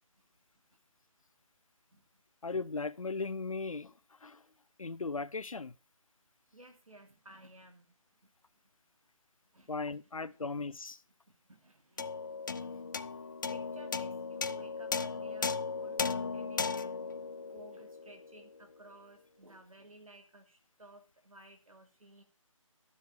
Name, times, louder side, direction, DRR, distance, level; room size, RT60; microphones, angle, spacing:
voice 1, 2.4-3.9 4.2-4.4 4.8-5.7 9.7-11.0, left 4 dB, 75° left, 0.9 m, -37 dB
voice 2, 6.5-7.9 8.2-8.3 9.5-9.8 10.2-10.5 11.3-12.1 12.5-12.7 13.5-17.0 17.5-22.2, right 2 dB, 85° right, 2.7 m, -56 dB
sound 1, 12.0-18.6, left 5 dB, 35° left, 0.6 m, -36 dB
12.5 x 7.4 x 6.7 m
figure-of-eight pair, 160°, 17 cm